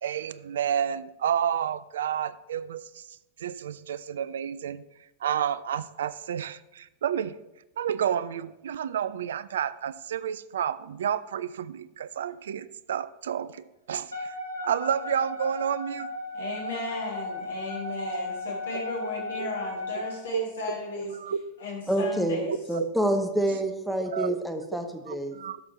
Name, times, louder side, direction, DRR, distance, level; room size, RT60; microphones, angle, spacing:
voice 1, 0.0-3.0 3.4-4.8 5.2-7.4 7.8-14.3 14.6-16.1 18.7-18.8 19.2-19.5 19.9-20.1 20.3-21.4 22.0-22.1 22.5-22.9 24.1-24.4 24.7-25.6, right 9 dB, 60° right, 17 dB, 0.3 m, -30 dB
Wind instrument woodwind instrument, 14.1-20.2, left 2 dB, 85° right, 1.9 m, -35 dB
voice 2, 16.3-21.1 21.6-22.6, left 3 dB, 65° left, -1 dB, 1.5 m, -35 dB
voice 3, 21.9-22.4 22.7-25.4, right 1 dB, 5° right, 5 dB, 0.9 m, -27 dB
12.5 x 6.1 x 3.0 m, 0.92 s
figure-of-eight pair, 90°, 0 cm